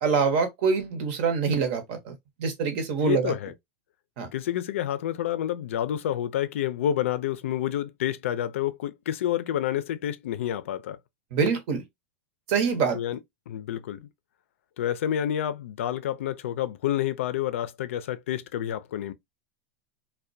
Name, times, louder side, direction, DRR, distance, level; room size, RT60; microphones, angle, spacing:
voice 1, 0.0-2.1 2.4-3.3 4.2-4.3 11.3-11.8 12.5-13.0, right 5 dB, 55° right, 0.8 m, -25 dB
voice 2, 3.0-3.5 4.3-11.0 12.9-13.2 13.5-14.1 14.8-19.1, left 11 dB, 85° left, 0.4 m, -29 dB
2.3 x 2.1 x 2.5 m
supercardioid pair, 140°, 7 cm